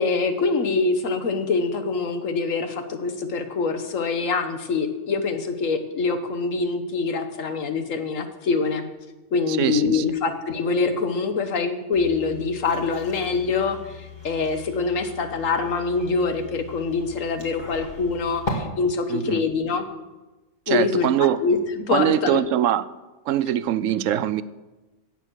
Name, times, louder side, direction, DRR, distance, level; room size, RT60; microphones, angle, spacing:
voice 1, 0.0-8.8 9.3-19.9 20.7-22.4, left 4 dB, 70° left, 8 dB, 1.5 m, -24 dB
voice 2, 9.5-10.0 19.1-19.4 20.7-21.4 21.9-22.8 23.3-24.4, right 11 dB, 75° right, 16 dB, 0.9 m, -22 dB
sound 1, 11.9-18.5, left 4 dB, 35° left, 2.1 m, -39 dB
16.5 x 7.3 x 6.3 m, 1.1 s
omnidirectional pair, 1.4 m